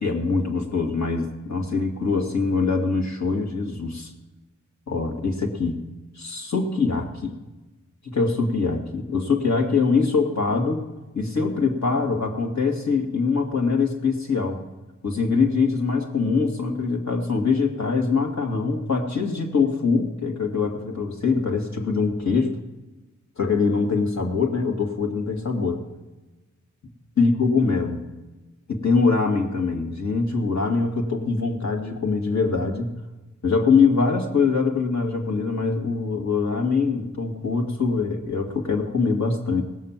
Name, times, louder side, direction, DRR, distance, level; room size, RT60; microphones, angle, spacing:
voice 1, 0.0-4.1 4.9-5.8 6.2-7.3 8.0-10.8 11.1-14.6 15.0-22.5 23.4-25.8 27.2-28.0 28.7-32.9 33.4-39.6, left 4 dB, 65° left, 2 dB, 2.3 m, -23 dB
18.0 x 6.7 x 7.4 m, 1.1 s
cardioid pair, 60°, 30 cm